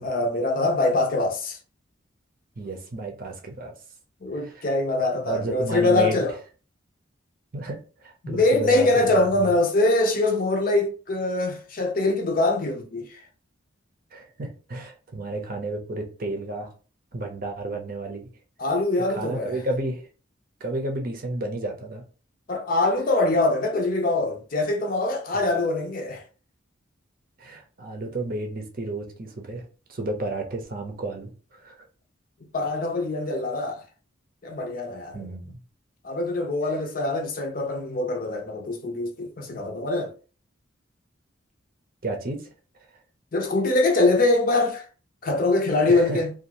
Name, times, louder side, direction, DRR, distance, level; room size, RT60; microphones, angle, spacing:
voice 1, 0.0-1.6 4.2-6.3 8.2-13.1 18.6-19.6 22.5-26.2 32.5-33.8 34.4-35.3 36.0-40.1 43.3-44.8 45.2-46.3, left 2 dB, 45° left, 0.5 m, -23 dB
voice 2, 2.6-3.7 4.4-4.7 5.3-6.2 7.5-9.5 14.1-16.7 17.1-18.3 19.1-20.1 20.6-22.0 27.4-31.9 35.1-35.6 42.0-42.5 45.9-46.2, right 2 dB, 45° right, 0.6 m, -32 dB
2.6 x 2.4 x 2.8 m
head